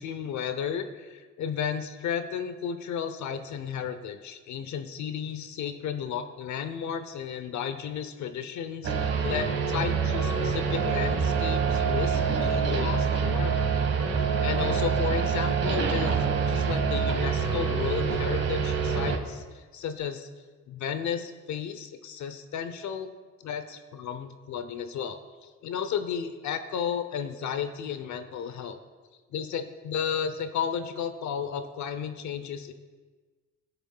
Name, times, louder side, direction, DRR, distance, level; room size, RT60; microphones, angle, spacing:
voice 1, 0.0-13.7 14.4-20.3 20.7-23.1 23.4-28.8 29.3-32.7, left 7 dB, 70° left, 9 dB, 0.8 m, -33 dB
sound 1, 8.8-19.2, right 6 dB, 55° right, 1.5 m, -26 dB
16.5 x 6.7 x 2.3 m, 1.4 s
cardioid pair, 90°, 30 cm